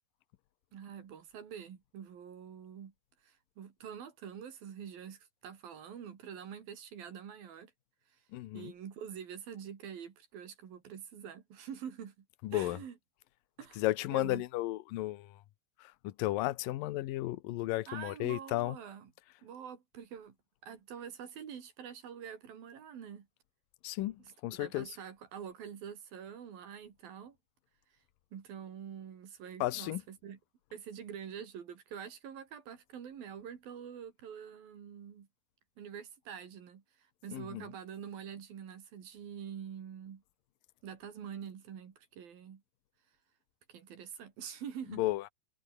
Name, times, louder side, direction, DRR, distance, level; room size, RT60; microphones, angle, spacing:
voice 1, 0.7-2.9 3.2-7.7 8.5-12.3 12.5-12.9 13.6-13.8 14.1-14.4 17.9-19.1 19.4-20.4 20.6-23.3 24.5-27.4 28.3-30.4 30.7-35.3 35.8-36.8 37.2-40.2 40.8-42.6 43.7-45.0, right 8 dB, 60° right, 4.2 m, -46 dB
voice 2, 8.3-8.7 12.4-12.8 13.8-15.4 15.8-18.8 23.8-25.0 29.6-30.0 37.3-37.7 44.9-45.3, left 17 dB, 70° left, 2.3 m, -34 dB
omnidirectional pair, 5.0 m